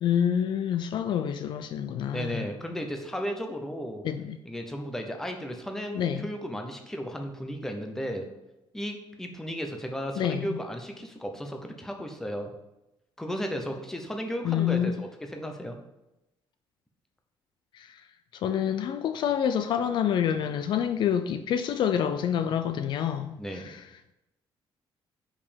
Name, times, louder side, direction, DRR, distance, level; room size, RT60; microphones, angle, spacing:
voice 1, 0.0-2.5 4.0-4.4 5.9-6.3 10.2-10.6 14.4-14.9 17.7-17.9 18.4-23.4, left 9 dB, 55° left, 9 dB, 0.3 m, -27 dB
voice 2, 2.1-4.0 4.4-8.3 8.7-12.5 13.2-15.8 23.4-23.7, equal, 5° left, 4 dB, 0.6 m, -34 dB
5.3 x 4.9 x 5.1 m, 0.92 s
cardioid pair, 180°, 9 cm